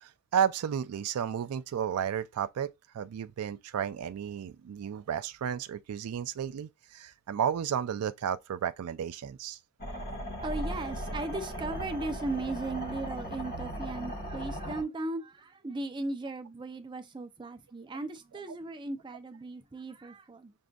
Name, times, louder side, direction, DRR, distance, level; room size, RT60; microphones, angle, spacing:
voice 1, 0.0-9.6, right 8 dB, 90° right, 0.3 m, -32 dB
sound 1, 9.8-14.8, equal, 40° left, 1.1 m, -37 dB
voice 2, 10.4-20.5, right 2 dB, 20° right, 0.4 m, -37 dB
6.0 x 2.5 x 2.2 m
head